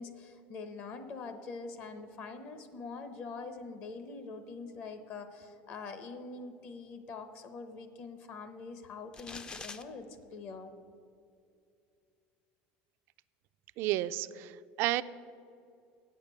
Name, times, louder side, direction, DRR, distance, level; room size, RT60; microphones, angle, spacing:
voice 1, 0.0-10.1 10.3-10.7, left 4 dB, 50° left, 9 dB, 0.8 m, -44 dB
sound 1, 9.1-9.8, left 4 dB, 20° left, 0.4 m, -44 dB
voice 2, 13.8-15.0, right 15 dB, 55° right, 15 dB, 0.3 m, -31 dB
8.3 x 6.6 x 8.1 m, 2.5 s
cardioid pair, 145°, 5 cm